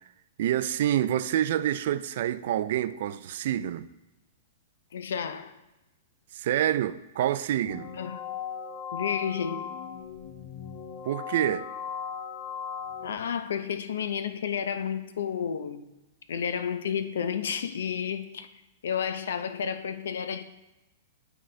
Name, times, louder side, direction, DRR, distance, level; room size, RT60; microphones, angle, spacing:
voice 1, 0.4-3.9 6.3-7.9 11.1-11.7, right 11 dB, 60° right, 0.3 m, -27 dB
voice 2, 4.9-5.5 8.0-8.2 8.9-9.7 13.0-15.9 16.3-18.5 18.8-20.4, left 7 dB, 85° left, 0.5 m, -31 dB
sound 1, 7.7-13.1, left 7 dB, 40° left, 0.6 m, -37 dB
11.0 x 3.9 x 3.2 m
hypercardioid pair, 155°, 0 cm